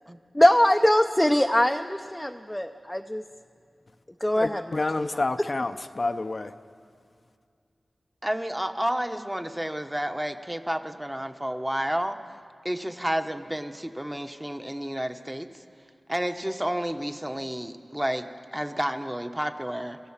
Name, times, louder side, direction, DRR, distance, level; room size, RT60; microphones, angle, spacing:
voice 1, 0.3-3.2 4.2-5.2, left 1 dB, 10° left, 0.6 m, -22 dB
voice 2, 4.4-6.5, left 2 dB, 50° left, 0.6 m, -29 dB
voice 3, 8.2-12.2 12.6-15.5 16.1-20.0, equal, 10° right, 1.0 m, -30 dB
26.5 x 14.5 x 7.3 m
wide cardioid pair, 75°, 0 cm